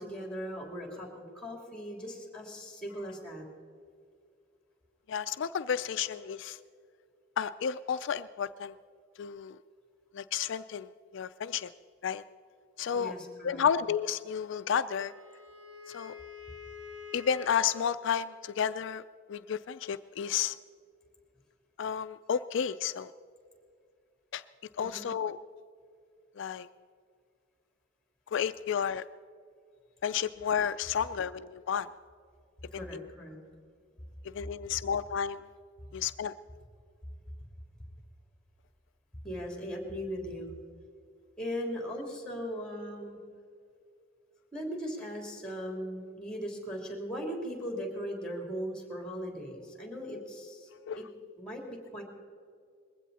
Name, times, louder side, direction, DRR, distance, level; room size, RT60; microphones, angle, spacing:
voice 1, 0.0-3.5 12.9-13.6 24.8-25.1 32.7-33.4 39.2-40.5 41.4-43.2 44.5-50.7 51.0-51.1 51.4-52.0, equal, 5° left, 2 dB, 3.2 m, -38 dB
voice 2, 5.1-6.6 7.4-8.7 9.2-9.6 10.1-11.7 12.0-12.2 12.8-13.1 13.4-15.1 15.9-16.2 17.1-19.0 19.3-20.6 21.8-23.1 24.3-24.4 24.7-25.4 26.4-26.7 28.3-29.0 30.0-31.9 32.7-33.0 34.2-35.5 35.9-36.4 50.9-51.0, left 7 dB, 65° left, 12 dB, 0.4 m, -32 dB
Wind instrument woodwind instrument, 14.7-18.0, left 5 dB, 70° right, 2.0 m, -47 dB
21.0 x 15.5 x 4.1 m, 2.2 s
head